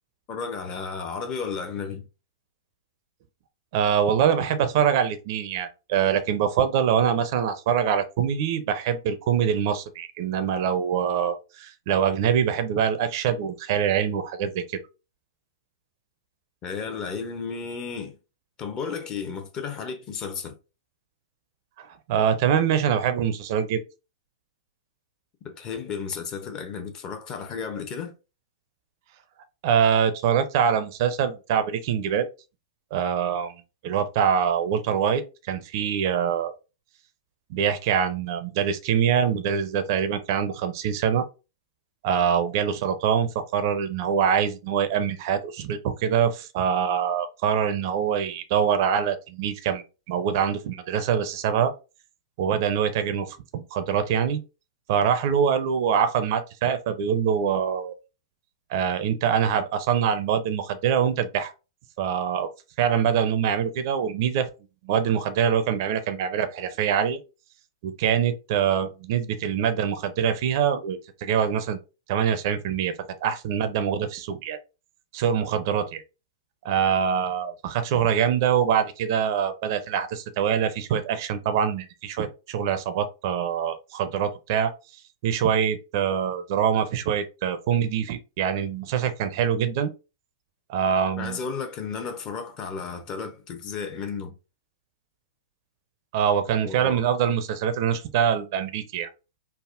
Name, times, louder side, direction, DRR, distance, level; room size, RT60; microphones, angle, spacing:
voice 1, 0.3-2.1 16.6-18.2 18.6-20.5 25.4-28.1 91.2-94.3 96.6-97.0, left 5 dB, 30° left, 0.7 m, -33 dB
voice 2, 3.7-14.8 21.8-23.8 29.6-32.3 32.9-33.5 33.8-35.2 35.5-36.5 37.5-41.3 42.0-51.7 52.4-54.4 54.9-58.0 58.7-61.5 62.0-62.5 62.8-64.5 64.8-67.2 67.8-71.8 72.1-72.9 73.2-74.6 75.1-76.0 76.6-84.7 85.2-89.9 90.7-91.4 96.1-99.1, right 8 dB, 50° right, 0.4 m, -24 dB
3.4 x 2.0 x 2.4 m
hypercardioid pair, 110°, 2 cm